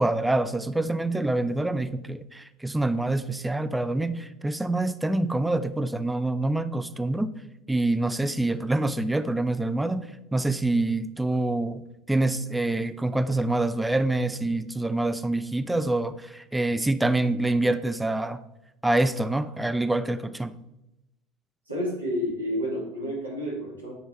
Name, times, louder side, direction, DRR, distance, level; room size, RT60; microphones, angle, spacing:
voice 1, 0.0-7.3 7.7-11.8 12.1-18.4 18.8-20.5, right 2 dB, 10° right, 11 dB, 0.5 m, -26 dB
voice 2, 21.7-23.9, equal, 90° right, -4 dB, 1.9 m, -30 dB
9.3 x 3.4 x 4.2 m, 0.89 s
figure-of-eight pair, 70°, 0 cm